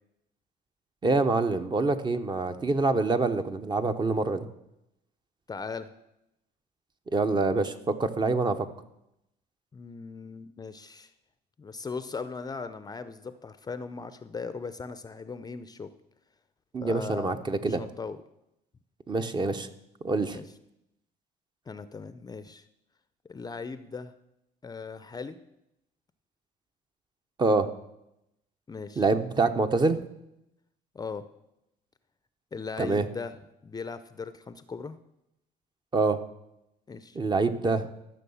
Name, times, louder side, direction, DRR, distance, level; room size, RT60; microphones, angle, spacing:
voice 1, 1.0-4.5 7.1-8.6 16.7-17.8 19.1-19.7 20.0-20.4 27.4-27.7 29.0-30.0 32.8-33.1 35.9-36.2 37.1-37.9, right 3 dB, 25° right, 8 dB, 0.9 m, -25 dB
voice 2, 5.5-5.9 9.7-11.1 11.6-15.9 16.8-17.3 17.6-18.2 20.3-20.4 21.7-22.6 23.3-24.1 24.6-25.4 28.7-29.0 30.9-31.2 32.5-33.3 33.6-35.0 36.9-37.2, left 4 dB, 25° left, 12 dB, 0.6 m, -38 dB
13.5 x 6.4 x 7.0 m, 0.85 s
cardioid pair, 110°, 17 cm